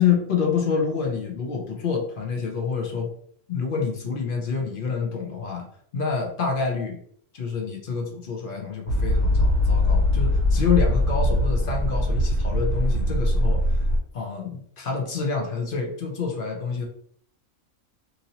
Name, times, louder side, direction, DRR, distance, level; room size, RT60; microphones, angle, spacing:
voice 1, 0.0-3.1 3.5-5.7 5.9-7.0 7.3-13.6 14.1-16.8, left 6 dB, 55° left, 1 dB, 0.6 m, -27 dB
sound 1, 8.9-14.0, left 1 dB, 45° right, 0.9 m, -21 dB
2.8 x 2.6 x 2.8 m, 0.63 s
omnidirectional pair, 1.5 m